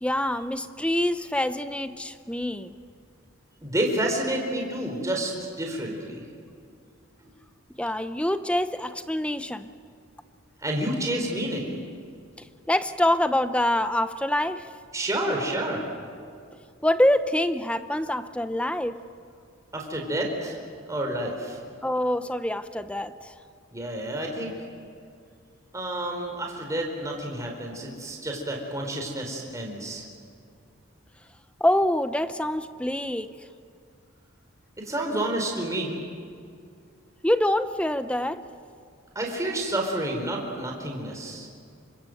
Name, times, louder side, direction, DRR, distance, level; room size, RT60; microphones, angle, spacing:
voice 1, 0.0-2.7 7.8-9.7 12.7-14.7 16.8-19.0 21.8-23.3 31.6-33.4 37.2-38.5, left 1 dB, 5° left, 11 dB, 0.7 m, -25 dB
voice 2, 3.6-5.3 5.6-6.2 10.6-11.7 14.9-15.8 19.7-20.6 20.9-21.6 23.7-24.6 25.7-30.0 34.8-36.0 39.1-41.5, right 1 dB, 15° right, 1 dB, 4.2 m, -29 dB
28.5 x 25.5 x 7.9 m, 2.3 s
head